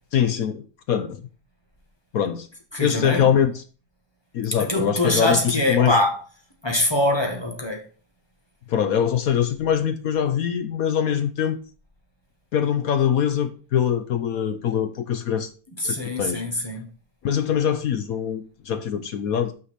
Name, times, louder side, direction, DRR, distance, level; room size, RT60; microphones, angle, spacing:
voice 1, 0.1-1.2 2.1-2.5 2.8-3.6 4.3-6.0 8.7-11.6 12.5-15.5 15.8-16.4 17.2-19.5, left 8 dB, 65° left, 0.9 m, -23 dB
voice 2, 2.7-3.3 4.7-6.2 6.6-7.8 15.8-16.9, left 1 dB, 15° left, 1.8 m, -23 dB
6.1 x 5.7 x 6.5 m
omnidirectional pair, 2.0 m